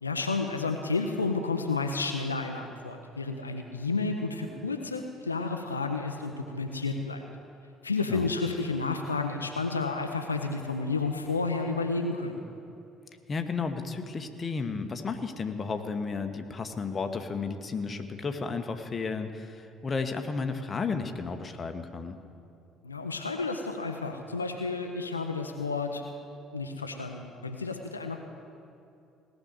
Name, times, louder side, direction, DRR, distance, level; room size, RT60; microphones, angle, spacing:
voice 1, 0.0-7.2 7.8-12.4 22.8-26.0 26.5-28.2, left 3 dB, 90° left, 5 dB, 0.6 m, -31 dB
voice 2, 13.3-22.2, left 4 dB, 30° left, 7 dB, 1.1 m, -33 dB
18.0 x 6.4 x 9.2 m, 2.6 s
figure-of-eight pair, 55°, 0 cm